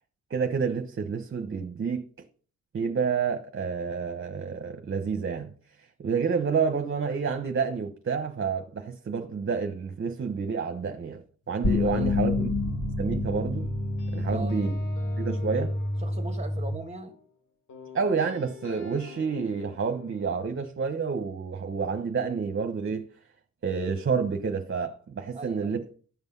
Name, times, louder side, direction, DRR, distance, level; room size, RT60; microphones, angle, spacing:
voice 1, 0.3-2.1 2.7-5.5 6.0-12.5 13.0-13.7 14.1-14.8 15.2-15.7 17.9-23.1 23.6-26.0, right 5 dB, 45° right, 1.1 m, -29 dB
sound 1, 11.6-16.7, left 2 dB, 55° left, 2.8 m, -28 dB
sound 2, 12.6-13.2 13.6-17.3 17.7-20.3, left 5 dB, 90° left, 4.1 m, -48 dB
voice 2, 14.2-14.6 16.0-17.1 25.3-25.8, right 3 dB, 25° right, 1.6 m, -39 dB
12.5 x 8.0 x 5.5 m
wide cardioid pair, 150°, 29 cm